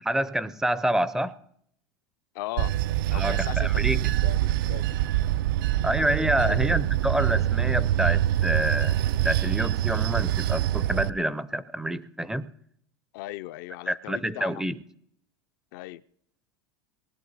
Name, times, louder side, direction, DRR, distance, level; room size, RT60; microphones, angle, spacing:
voice 1, 0.0-1.4 3.1-4.1 5.8-9.0 9.2-12.5 13.9-14.8, right 1 dB, 5° right, 0.5 m, -27 dB
voice 2, 2.3-2.7 3.1-3.7 4.2-4.8 6.4-6.9 13.1-14.6 15.7-16.0, left 17 dB, 60° left, 0.4 m, -37 dB
Bell / Train, 2.6-11.1, right 13 dB, 70° right, 0.4 m, -25 dB
19.5 x 11.5 x 4.0 m
supercardioid pair, 150°, 12 cm